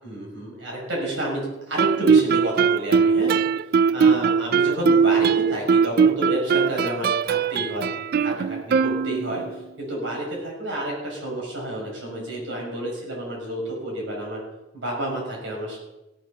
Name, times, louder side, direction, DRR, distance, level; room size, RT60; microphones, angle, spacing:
voice 1, 0.0-3.4 3.9-7.9 8.2-9.4 9.8-14.4 14.7-15.8, right 1 dB, 75° right, -2 dB, 6.6 m, -30 dB
Guitar, 1.8-9.5, right 6 dB, 55° right, 0.3 m, -20 dB
17.0 x 7.3 x 6.8 m, 0.97 s
head